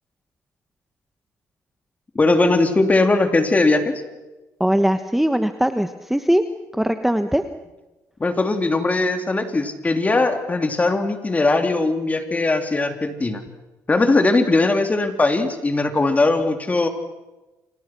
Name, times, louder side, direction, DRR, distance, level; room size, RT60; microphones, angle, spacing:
voice 1, 2.1-4.0 8.2-13.4 13.9-16.9, left 2 dB, 20° left, 6 dB, 3.4 m, -19 dB
voice 2, 4.6-6.4 6.7-7.4, equal, 5° right, 8 dB, 1.2 m, -20 dB
30.0 x 25.5 x 6.2 m, 1.1 s
cardioid pair, 100°, 7 cm